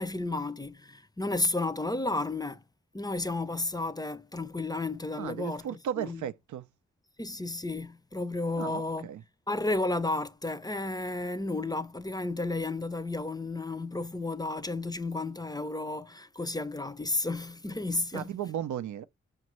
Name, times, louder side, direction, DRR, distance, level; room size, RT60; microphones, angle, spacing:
voice 1, 0.0-2.6 2.9-6.2 7.2-9.1 9.5-18.3, left 2 dB, 15° left, 0.5 m, -32 dB
voice 2, 5.2-6.6 8.6-9.2 18.1-19.0, right 10 dB, 85° right, 0.4 m, -35 dB
5.2 x 2.5 x 3.0 m
cardioid pair, 55°, 29 cm